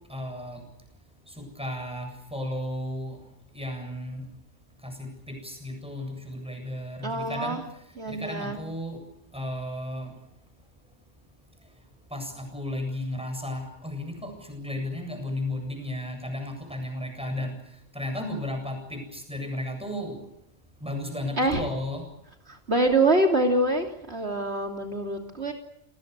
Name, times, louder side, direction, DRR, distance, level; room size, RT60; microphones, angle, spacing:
voice 1, 0.1-0.6 1.6-3.2 3.5-4.2 4.8-7.6 8.1-9.0 9.3-10.1 12.1-17.5 17.9-20.2 20.8-22.1, left 1 dB, 5° right, 5 dB, 7.8 m, -34 dB
voice 2, 7.0-7.6 7.9-8.6 21.4-21.6 22.5-25.5, right 2 dB, 65° right, 3 dB, 3.3 m, -25 dB
29.0 x 20.0 x 8.2 m, 0.77 s
omnidirectional pair, 1.2 m